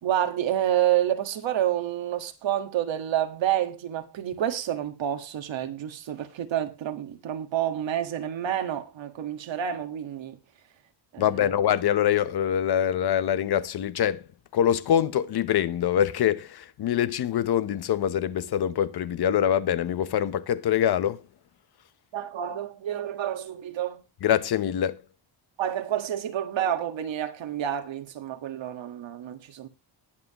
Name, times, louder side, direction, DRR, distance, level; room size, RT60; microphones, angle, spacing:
voice 1, 0.0-10.4 11.1-11.3 22.1-24.0 25.6-29.7, right 11 dB, 75° right, 1.7 m, -29 dB
voice 2, 11.2-14.3 14.5-21.2 24.2-25.0, left 10 dB, 55° left, 0.9 m, -24 dB
20.0 x 7.6 x 3.0 m
wide cardioid pair, 155°, 45 cm